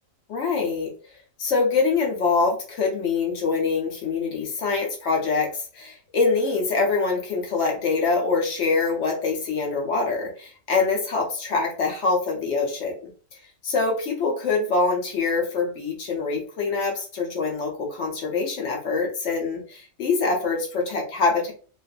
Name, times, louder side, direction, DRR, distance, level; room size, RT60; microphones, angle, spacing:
voice 1, 0.3-0.9 1.4-13.1 13.6-21.5, left 4 dB, 65° left, -1 dB, 0.9 m, -24 dB
2.5 x 2.3 x 2.3 m, 0.40 s
omnidirectional pair, 1.4 m